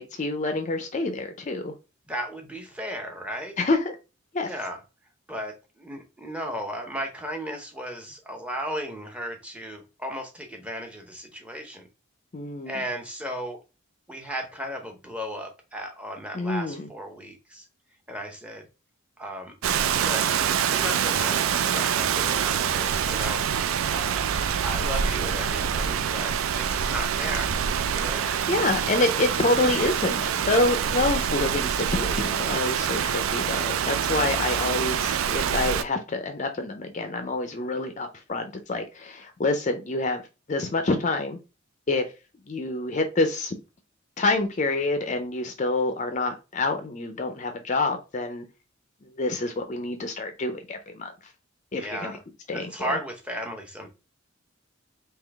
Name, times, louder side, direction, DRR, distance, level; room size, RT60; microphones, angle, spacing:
voice 1, 0.0-1.7 3.6-3.9 4.3-4.5 12.3-12.8 16.3-16.9 28.1-40.2 40.5-41.4 41.9-42.1 42.5-43.5 44.2-48.5 49.0-51.1 51.7-52.2 52.5-53.0, left 2 dB, 35° left, 0.4 m, -27 dB
voice 2, 2.1-3.6 4.4-4.8 5.3-11.9 12.7-13.6 14.1-17.6 18.1-18.7 19.2-19.6 19.9-23.4 23.9-24.3 24.6-27.5 27.9-28.3 51.8-52.2 52.5-53.9, equal, 5° right, 0.7 m, -35 dB
Rain, 19.6-35.8, right 8 dB, 80° right, 0.3 m, -26 dB
3.7 x 2.8 x 3.3 m
head